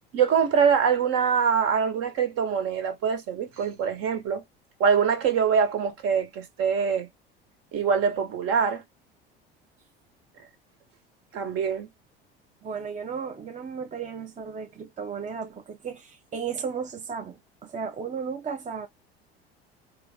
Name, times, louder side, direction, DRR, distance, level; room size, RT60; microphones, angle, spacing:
voice 1, 0.1-4.4 4.8-7.1 7.7-8.8 11.3-11.9, right 6 dB, 55° right, 1.7 m, -24 dB
voice 2, 12.6-18.9, right 6 dB, 25° right, 0.8 m, -34 dB
4.5 x 2.4 x 3.7 m
hypercardioid pair, 70°, 30 cm